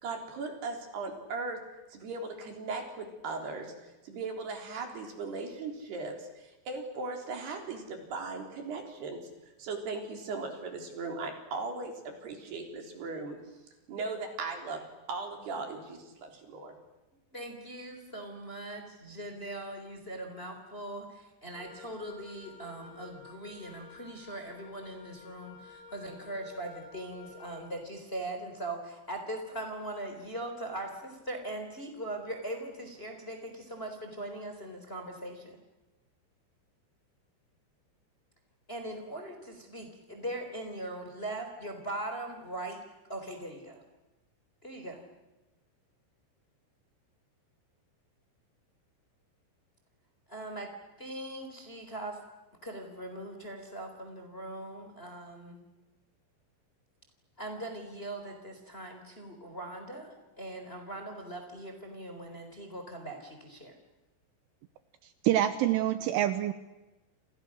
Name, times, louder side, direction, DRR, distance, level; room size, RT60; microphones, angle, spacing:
voice 1, 0.0-1.6 1.9-3.7 4.0-9.2 9.6-13.4 13.9-14.8 15.1-16.8, right 3 dB, 55° right, 3 dB, 5.6 m, -38 dB
voice 2, 17.3-35.5 38.7-42.8 43.1-43.8 44.6-45.0 50.3-50.7 51.0-52.2 52.6-55.6 57.4-63.7, right 1 dB, 15° left, 5 dB, 3.4 m, -40 dB
Wind instrument woodwind instrument, 21.5-27.8, left 4 dB, 80° left, 5.5 m, -52 dB
voice 3, 65.2-66.5, right 12 dB, 80° right, 10 dB, 3.4 m, -26 dB
29.5 x 28.5 x 6.5 m, 1.1 s
omnidirectional pair, 5.8 m